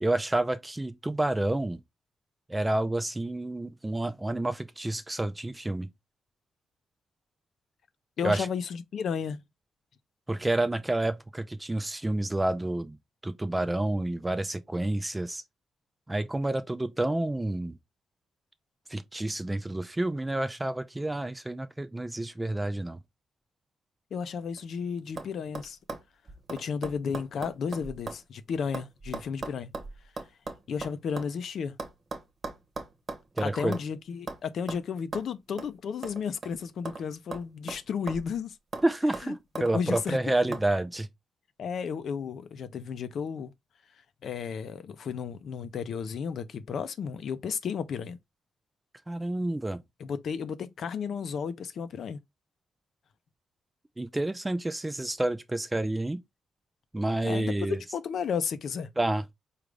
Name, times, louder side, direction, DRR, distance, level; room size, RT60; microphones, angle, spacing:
voice 1, 0.0-1.8 2.5-5.9 8.2-8.5 10.3-13.0 13.2-15.4 16.1-17.7 18.9-23.0 33.4-33.8 38.8-41.1 49.1-49.8 54.0-56.2 56.9-57.8 59.0-59.2, right 1 dB, 10° right, 0.3 m, -29 dB
voice 2, 8.2-9.4 24.1-25.8 26.5-29.7 30.7-31.7 33.4-38.6 39.3-39.4 39.7-40.6 41.6-43.5 44.2-48.2 50.0-52.2 57.2-57.5 57.9-58.9, left 6 dB, 55° left, 0.5 m, -33 dB
sound 1, 24.4-24.8 25.2-25.3 25.5-28.3 28.5-31.3 31.8-33.9 34.3-34.4 34.7-34.8 35.1-35.3 35.6-35.7 36.0-37.0 37.3-38.4 38.7-38.9 39.1-40.1 40.5-40.7, right 3 dB, 30° right, 0.8 m, -39 dB
4.9 x 2.5 x 3.2 m
wide cardioid pair, 160°, 0 cm